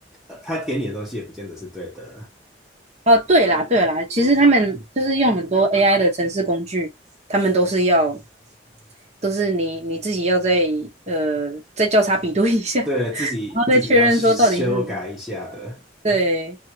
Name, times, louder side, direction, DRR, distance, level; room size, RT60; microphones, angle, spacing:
voice 1, 0.3-2.3 12.9-15.8, equal, ahead, 1.0 m, -29 dB
voice 2, 3.1-6.9 7.3-8.2 9.2-12.9 13.2-13.3 13.5-14.8 16.0-16.6, right 1 dB, 40° right, 1.1 m, -19 dB
2.8 x 2.7 x 3.0 m
head